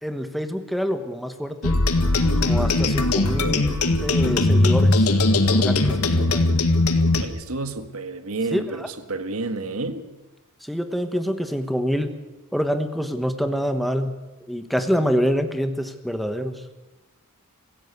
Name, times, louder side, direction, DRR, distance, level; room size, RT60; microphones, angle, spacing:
voice 1, 0.0-1.8 2.4-5.1 5.5-6.5 8.5-8.9 10.6-12.1 12.5-14.1 14.5-16.6, equal, ahead, 1.3 m, -26 dB
sound 1, 1.6-7.2, left 2 dB, 85° left, 1.9 m, -19 dB
voice 2, 7.2-10.0, right 3 dB, 70° right, 1.7 m, -30 dB
24.5 x 16.0 x 8.2 m
head